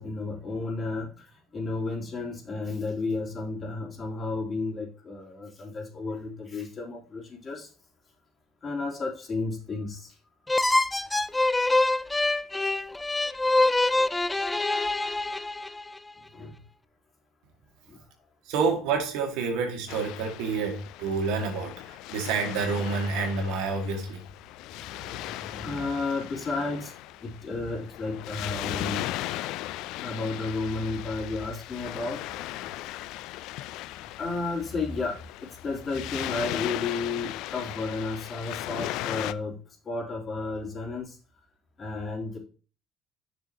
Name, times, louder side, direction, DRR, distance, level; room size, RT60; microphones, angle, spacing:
voice 1, 0.0-7.7 8.6-10.2 16.3-16.6 17.9-18.0 25.0-25.1 25.4-26.9 27.2-29.0 30.0-32.3 34.2-39.6 39.8-41.2 41.8-42.4, left 3 dB, 35° left, 3.3 m, -32 dB
sound 1, 10.5-16.0, left 2 dB, 15° left, 0.5 m, -25 dB
voice 2, 18.5-24.2, right 4 dB, 75° right, 1.9 m, -28 dB
Waves surf, 19.9-39.3, left 16 dB, 75° left, 0.3 m, -37 dB
9.3 x 6.1 x 2.9 m
hypercardioid pair, 70°, 0 cm